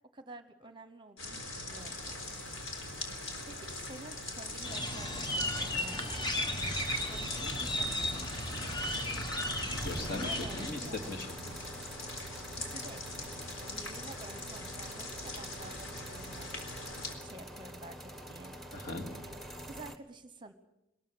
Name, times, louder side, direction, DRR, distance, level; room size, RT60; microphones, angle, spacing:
voice 1, 0.1-2.2 3.5-6.0 7.1-8.5 9.9-11.1 12.5-16.8 17.2-18.6 19.1-19.3 19.7-20.5, right 2 dB, 25° right, 10 dB, 1.0 m, -50 dB
sound 1, 1.2-17.1, left 2 dB, 80° left, 4.0 m, -42 dB
sound 2, 1.7-20.0, right 1 dB, ahead, 1.3 m, -48 dB
sound 3, 4.6-10.7, left 1 dB, 20° left, 1.3 m, -35 dB
voice 2, 9.6-11.5 18.7-19.1, left 2 dB, 45° left, 1 dB, 2.9 m, -39 dB
21.5 x 14.0 x 9.1 m, 0.90 s
head